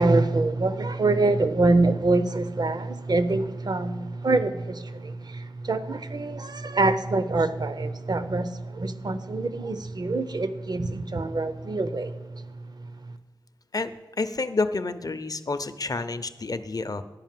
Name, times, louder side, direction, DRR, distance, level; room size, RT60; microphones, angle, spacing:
voice 1, 0.0-12.1, right 2 dB, 50° right, 0.7 m, -25 dB
voice 2, 14.2-17.0, left 3 dB, 45° left, 0.6 m, -29 dB
10.5 x 5.1 x 7.5 m
cardioid pair, 45°, 9 cm